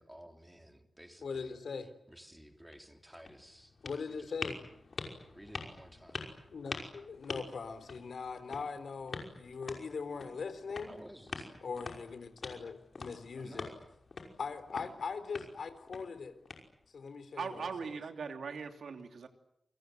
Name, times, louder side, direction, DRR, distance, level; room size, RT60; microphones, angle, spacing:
voice 1, 0.0-1.5 2.1-3.8 4.2-4.3 5.3-6.2 10.9-11.6 13.3-13.8 17.5-17.7, equal, 5° right, 5 dB, 3.3 m, -54 dB
voice 2, 1.2-1.9 3.8-4.6 6.5-11.0 11.6-13.7 14.4-16.4 16.9-18.0, left 5 dB, 75° left, 11 dB, 3.7 m, -41 dB
sound 1, 2.5-17.1, left 4 dB, 55° left, 5.6 m, -46 dB
voice 3, 17.4-19.3, right 5 dB, 90° right, 6 dB, 3.0 m, -40 dB
29.0 x 24.5 x 8.0 m, 0.78 s
wide cardioid pair, 110°, 0 cm